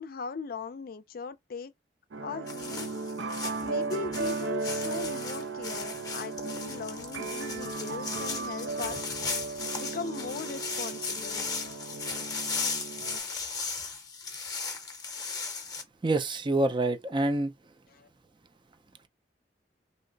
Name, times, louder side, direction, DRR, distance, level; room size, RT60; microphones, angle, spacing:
voice 1, 0.0-1.7 2.2-2.9 3.6-9.1 9.8-11.5 17.9-18.1, left 5 dB, 55° left, 0.4 m, -39 dB
sound 1, 2.1-13.2, right 3 dB, 85° right, 0.6 m, -36 dB
sound 2, 2.5-15.8, left 4 dB, 20° left, 0.7 m, -36 dB
voice 2, 16.0-17.5, right 2 dB, 25° right, 0.4 m, -26 dB
2.8 x 2.1 x 3.8 m
head